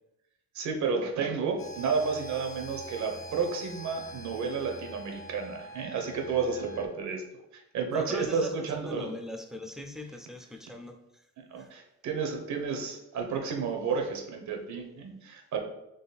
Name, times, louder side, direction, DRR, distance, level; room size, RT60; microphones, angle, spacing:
voice 1, 0.5-7.2 7.7-9.1 11.5-15.6, right 5 dB, 70° right, 3 dB, 1.0 m, -31 dB
sound 1, 1.6-6.9, equal, 40° left, 0.8 m, -44 dB
voice 2, 7.9-11.0 11.6-11.7, left 1 dB, ahead, 4 dB, 0.5 m, -40 dB
4.0 x 3.1 x 4.1 m, 0.88 s
cardioid pair, 90°, 30 cm